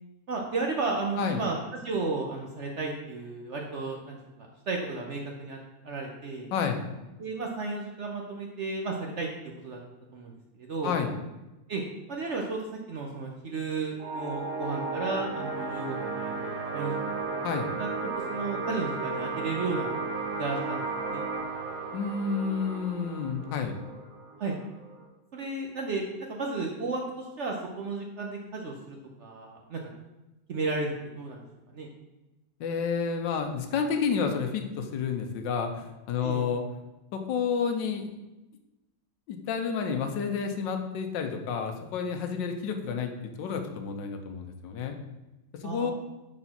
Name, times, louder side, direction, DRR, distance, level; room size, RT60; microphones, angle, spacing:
voice 1, 0.3-4.2 4.7-5.6 5.8-6.5 7.2-9.3 9.6-9.8 10.1-10.3 10.6-10.9 11.7-11.8 12.1-17.2 17.8-19.9 20.3-21.2 24.4-24.6 25.3-29.8 30.5-31.4 31.7-31.9 36.2-36.4 45.6-45.9, right 3 dB, 65° right, 1 dB, 0.7 m, -33 dB
sound 1, 14.0-25.0, right 4 dB, 85° right, 1.7 m, -34 dB
voice 2, 21.9-23.8 32.6-36.6 37.1-38.1 39.3-45.0 45.6-45.9, left 6 dB, 80° left, 5 dB, 1.4 m, -30 dB
4.8 x 4.1 x 5.8 m, 1.0 s
omnidirectional pair, 2.0 m